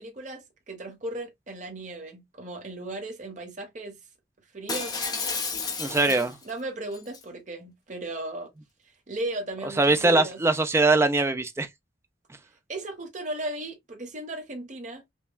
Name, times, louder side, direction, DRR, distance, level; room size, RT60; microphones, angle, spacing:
voice 1, 0.0-4.0 4.5-4.9 6.1-8.5 9.1-10.4 12.7-15.0, right 1 dB, 40° right, 1.0 m, -36 dB
Shatter, 4.7-6.5 6.9-7.2, left 4 dB, 20° left, 0.9 m, -31 dB
voice 2, 5.8-6.3 9.8-11.7, right 2 dB, 15° right, 0.4 m, -22 dB
5.4 x 2.3 x 2.2 m
head